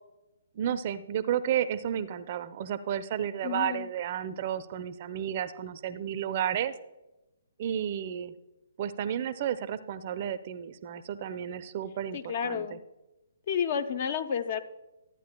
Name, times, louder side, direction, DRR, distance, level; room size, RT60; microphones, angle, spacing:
voice 1, 0.5-6.7 7.6-8.3 8.8-12.8, right 9 dB, 40° right, 13 dB, 0.5 m, -32 dB
voice 2, 3.4-3.9 12.1-12.8 13.5-14.6, left 7 dB, 45° left, 10 dB, 0.6 m, -31 dB
13.0 x 9.2 x 2.2 m, 0.97 s
figure-of-eight pair, 130°, 0 cm